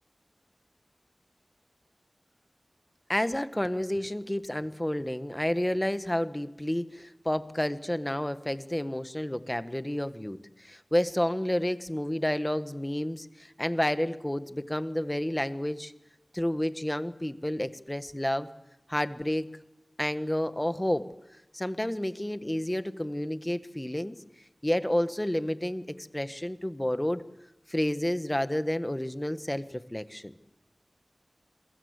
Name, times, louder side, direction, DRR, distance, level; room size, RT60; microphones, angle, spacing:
voice 1, 3.1-15.9 16.3-18.5 18.9-19.5 20.0-21.1 21.5-24.2 24.6-27.2 27.7-30.3, left 1 dB, 15° left, 11 dB, 1.4 m, -30 dB
27.0 x 23.0 x 8.2 m, 0.93 s
wide cardioid pair, 50°, 0 cm